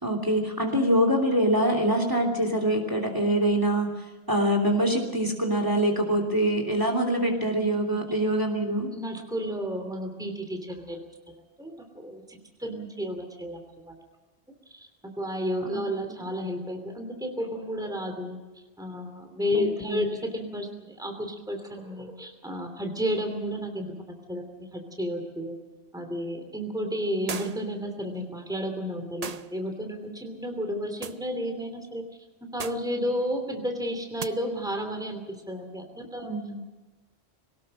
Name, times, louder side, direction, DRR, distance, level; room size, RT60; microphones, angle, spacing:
voice 1, 0.0-3.9 4.3-8.9 15.7-15.8 19.5-20.0 36.2-36.6, right 1 dB, 20° right, 3 dB, 3.0 m, -24 dB
voice 2, 8.9-11.0 11.3-13.9 14.7-18.4 18.8-23.9 24.3-25.5 25.9-32.0 32.5-36.3, equal, 5° right, 4 dB, 2.9 m, -32 dB
sound 1, 27.3-27.8 29.2-29.6 31.0-31.3 32.6-32.9 34.2-34.3, right 6 dB, 40° right, 0.8 m, -36 dB
23.0 x 19.0 x 6.6 m, 1.2 s
omnidirectional pair, 1.1 m